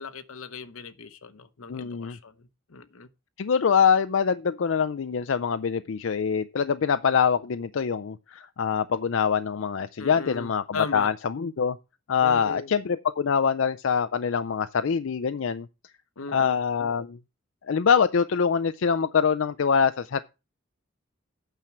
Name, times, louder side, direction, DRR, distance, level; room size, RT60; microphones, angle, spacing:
voice 1, 0.0-3.1 10.0-11.1 12.2-12.7 16.2-16.6, left 4 dB, 80° left, 0.9 m, -38 dB
voice 2, 1.7-2.2 3.4-11.8 12.1-15.7 16.3-17.2 17.7-20.2, left 6 dB, 65° left, 0.4 m, -24 dB
9.0 x 5.8 x 6.1 m
head